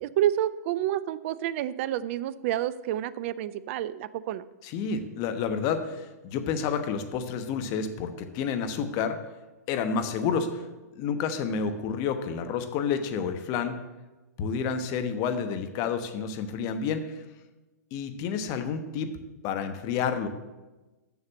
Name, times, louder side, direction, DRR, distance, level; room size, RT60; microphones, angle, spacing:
voice 1, 0.0-4.5, right 12 dB, 50° right, 16 dB, 0.5 m, -29 dB
voice 2, 4.6-9.2 9.7-10.7 10.9-13.7 14.4-17.2 17.9-19.1 19.4-20.3, left 6 dB, 40° left, 8 dB, 1.1 m, -29 dB
7.1 x 6.6 x 7.3 m, 1.1 s
hypercardioid pair, 115°, 9 cm